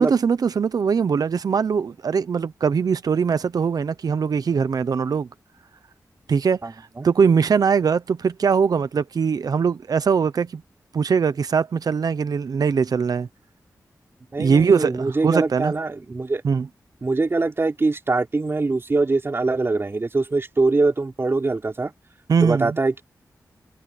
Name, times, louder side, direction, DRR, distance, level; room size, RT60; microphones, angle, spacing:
voice 1, 0.0-5.3 6.3-6.6 7.0-10.6 10.9-13.3 14.4-15.7 16.4-16.7 22.3-22.8, right 6 dB, 70° right, 0.8 m, -21 dB
voice 2, 6.6-7.1 14.3-16.4 17.0-21.9 22.4-23.0, right 3 dB, 35° right, 4.2 m, -23 dB
wide cardioid pair, 105°, 7 cm